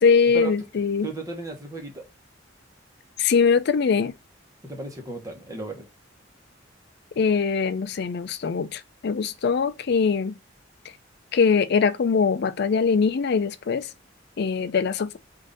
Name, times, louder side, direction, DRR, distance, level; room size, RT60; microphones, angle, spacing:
voice 1, 0.0-1.1 3.2-4.1 7.2-10.3 11.3-13.9 14.4-15.2, left 5 dB, 60° left, 0.4 m, -22 dB
voice 2, 1.0-2.0 4.6-5.9, right 3 dB, 20° right, 1.0 m, -34 dB
3.7 x 2.6 x 3.7 m
head